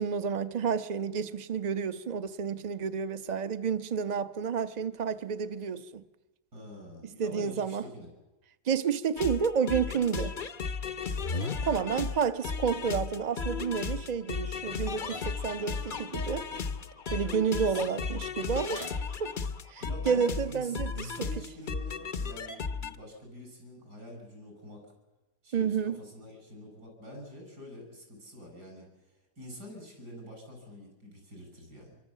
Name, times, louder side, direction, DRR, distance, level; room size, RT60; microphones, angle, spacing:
voice 1, 0.0-6.0 7.2-7.9 8.7-10.3 11.6-16.4 17.1-18.9 19.2-19.3 19.7-21.1 25.5-26.0, right 6 dB, 35° right, 0.8 m, -30 dB
voice 2, 6.5-8.1 11.5-12.0 17.2-17.8 19.8-24.9 25.4-32.0, equal, 80° right, 7.8 m, -47 dB
sound 1, 9.2-23.0, left 5 dB, 40° left, 0.9 m, -35 dB
25.5 x 23.0 x 7.5 m
omnidirectional pair, 1.7 m